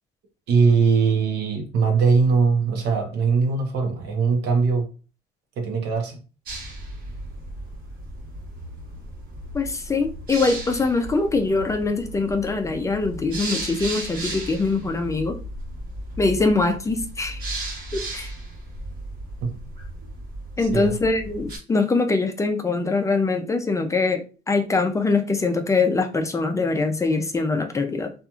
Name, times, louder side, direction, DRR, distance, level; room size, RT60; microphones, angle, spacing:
voice 1, 0.5-4.9 5.6-6.2 19.4-19.5 20.7-20.9, right 5 dB, 80° right, 0.9 m, -20 dB
sound 1, 6.5-21.6, right 1 dB, 60° right, 1.2 m, -35 dB
voice 2, 9.5-15.4 16.2-17.4 17.9-18.3 20.6-28.1, left 3 dB, 20° left, 0.4 m, -23 dB
2.8 x 2.4 x 2.3 m
cardioid pair, 110°, 17 cm